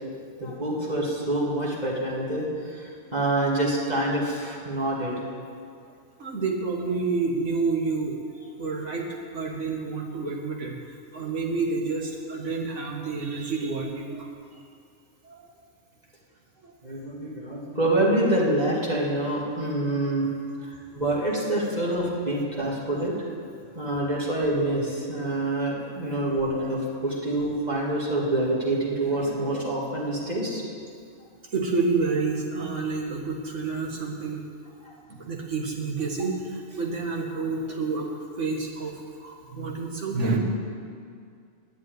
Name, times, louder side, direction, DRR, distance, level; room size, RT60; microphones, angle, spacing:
voice 1, 0.4-5.1 16.8-20.3 20.9-23.1 23.7-30.6, right 1 dB, 30° right, -5 dB, 2.5 m, -26 dB
voice 2, 6.2-14.3 15.2-15.4 16.6-16.7 26.0-26.2 31.5-34.4 35.1-38.1 38.4-40.4, right 4 dB, 65° right, 0 dB, 2.0 m, -29 dB
10.5 x 8.0 x 9.4 m, 2.3 s
omnidirectional pair, 1.4 m